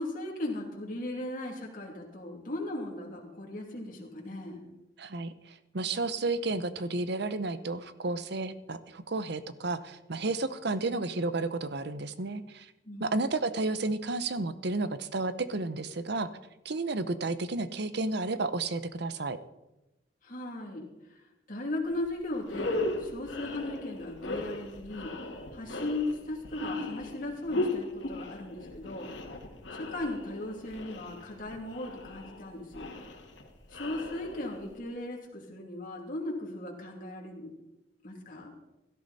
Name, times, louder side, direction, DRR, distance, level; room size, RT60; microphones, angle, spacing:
voice 1, 0.0-4.7 12.8-13.1 20.2-21.2 21.5-25.1 25.5-29.1 29.7-32.9 33.7-37.5 38.0-38.5, left 2 dB, 50° left, -1 dB, 2.8 m, -37 dB
voice 2, 5.0-12.7 13.0-16.3 16.6-19.4, right 3 dB, 65° right, 13 dB, 0.9 m, -32 dB
sound 1, 21.9-22.0 22.4-34.8, left 2 dB, 90° left, 2.2 m, -37 dB
16.5 x 13.0 x 4.2 m, 0.95 s
head